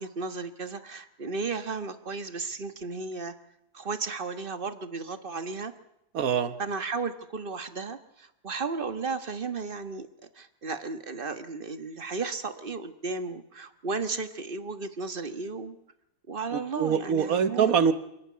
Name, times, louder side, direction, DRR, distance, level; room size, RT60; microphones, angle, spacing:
voice 1, 0.0-3.3 3.7-5.7 6.6-10.1 10.3-15.8 16.3-17.7, right 4 dB, 40° right, 10 dB, 1.5 m, -34 dB
voice 2, 6.1-6.5 16.8-17.9, right 7 dB, 75° right, 11 dB, 1.6 m, -23 dB
26.5 x 12.0 x 9.5 m, 0.83 s
omnidirectional pair, 1.5 m